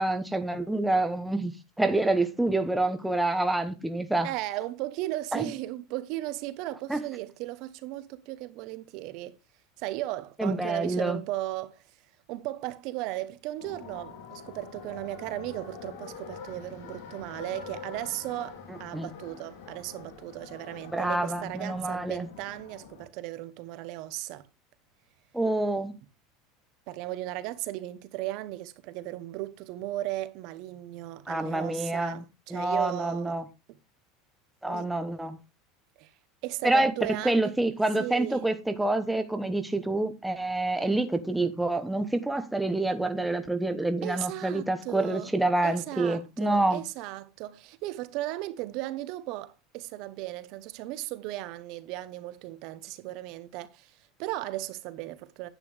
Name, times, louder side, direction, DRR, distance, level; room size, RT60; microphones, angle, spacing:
voice 1, 0.0-1.5 1.8-4.3 5.3-5.4 6.9-7.0 10.4-11.2 18.9-19.1 20.9-22.3 25.3-25.9 31.3-32.2 32.5-33.4 34.6-35.4 36.6-36.9 37.2-46.8, right 2 dB, 5° right, 1.0 m, -27 dB
voice 2, 4.2-9.4 9.8-11.8 12.3-24.5 26.9-33.4 34.6-34.9 36.0-36.1 36.4-37.5 38.0-38.5 44.0-45.3 45.6-55.5, right 16 dB, 55° right, 1.0 m, -36 dB
sound 1, 13.6-23.1, left 6 dB, 80° left, 3.5 m, -45 dB
10.5 x 8.5 x 3.4 m
supercardioid pair, 150°, 0 cm